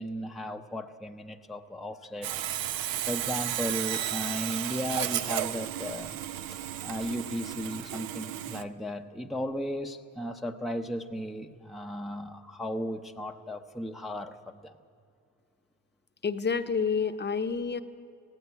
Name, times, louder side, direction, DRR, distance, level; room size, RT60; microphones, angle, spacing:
voice 1, 0.0-2.5 3.0-6.2 6.8-14.7, equal, ahead, 3 dB, 0.7 m, -35 dB
Sawing, 2.2-8.6, right 11 dB, 70° right, 0.8 m, -33 dB
voice 2, 16.2-17.8, left 5 dB, 30° left, 9 dB, 0.9 m, -28 dB
18.5 x 16.0 x 9.4 m, 2.4 s
cardioid pair, 90°, 37 cm